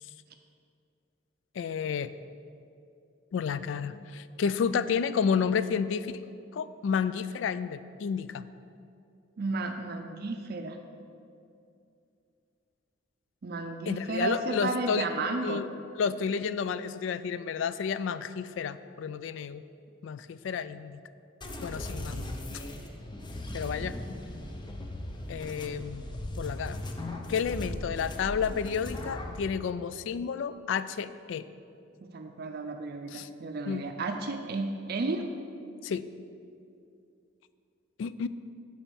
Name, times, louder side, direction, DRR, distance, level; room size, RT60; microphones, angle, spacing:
voice 1, 1.6-2.1 3.3-6.2 6.5-8.4 13.9-15.1 15.4-15.7 16.0-19.6 20.0-21.0 21.6-22.6 23.5-23.9 25.3-26.0 26.4-26.8 27.3-31.4 33.1-33.3 33.7-33.8 35.8-36.0 38.0-38.3, left 6 dB, 70° left, 14 dB, 0.3 m, -31 dB
voice 2, 9.4-10.8 13.4-15.6 32.0-35.3, right 3 dB, 55° right, 5 dB, 0.5 m, -33 dB
sound 1, 21.4-29.4, left 1 dB, 25° left, 0.6 m, -38 dB
7.2 x 4.6 x 7.0 m, 2.5 s
head